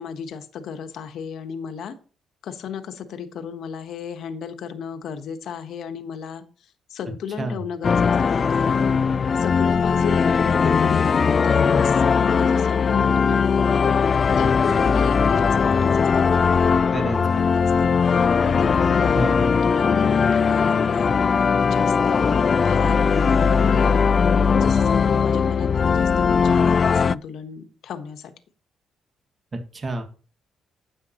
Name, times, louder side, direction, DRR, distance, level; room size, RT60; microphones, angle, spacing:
voice 1, 0.0-2.0 2.4-6.4 6.9-8.9 9.4-13.4 14.4-21.1 21.6-24.0 24.6-28.3, left 7 dB, 75° left, 7 dB, 1.2 m, -34 dB
sound 1, 7.8-27.1, left 6 dB, 45° left, 0.3 m, -19 dB
voice 2, 16.9-17.5 19.1-19.6 29.5-30.0, right 2 dB, 35° right, 5 dB, 1.8 m, -29 dB
10.5 x 7.4 x 2.9 m, 0.37 s
cardioid pair, 90°, 0 cm